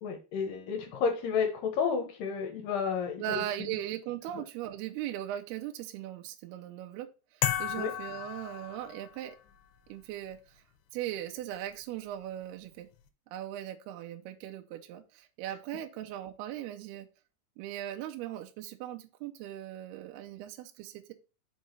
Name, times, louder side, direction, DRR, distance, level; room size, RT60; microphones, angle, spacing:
voice 1, 0.0-3.7 7.8-7.9, left 6 dB, 70° left, 5 dB, 2.4 m, -31 dB
voice 2, 3.2-9.4 9.9-10.6 10.9-12.9 13.3-17.1 17.6-21.1, right 12 dB, 80° right, 6 dB, 2.4 m, -39 dB
sound 1, 7.4-9.3, left 11 dB, 85° left, 3.0 m, -34 dB
6.3 x 5.0 x 4.1 m, 0.32 s
omnidirectional pair, 5.0 m